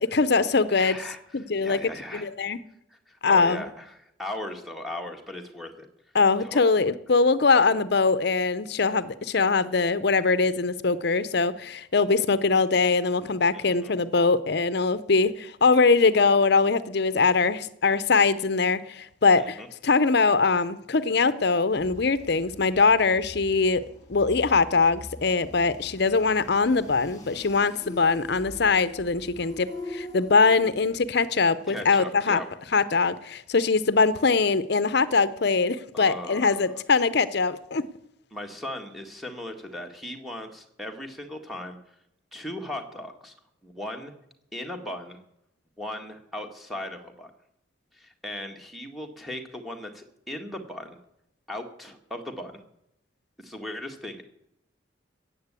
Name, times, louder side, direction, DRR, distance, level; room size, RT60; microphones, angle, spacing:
voice 1, 0.0-1.0 1.3-1.8 2.1-2.6 3.2-3.6 6.1-23.8 24.1-32.4 32.7-37.8, left 4 dB, 55° left, 15 dB, 0.7 m, -22 dB
voice 2, 0.7-1.2 1.6-2.3 2.9-5.9 6.4-6.6 13.5-13.9 19.3-19.7 31.7-32.4 35.9-36.8 38.3-41.8 42.3-43.3 43.6-44.1 44.5-45.2 45.8-47.3 47.9-51.0 51.5-52.6 53.4-54.2, left 1 dB, ahead, 1 dB, 1.7 m, -37 dB
sound 1, 21.7-31.1, left 1 dB, 20° left, 2.4 m, -43 dB
15.0 x 8.7 x 8.3 m, 0.78 s
head